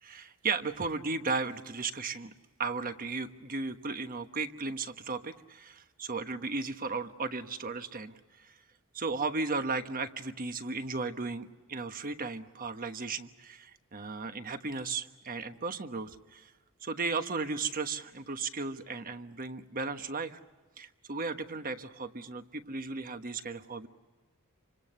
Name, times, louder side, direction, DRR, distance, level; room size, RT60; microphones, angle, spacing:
voice 1, 0.0-2.3 2.6-8.5 8.9-16.5 16.8-20.4 20.8-23.9, right 4 dB, 40° right, 8 dB, 1.2 m, -35 dB
28.0 x 25.5 x 6.8 m, 1.3 s
head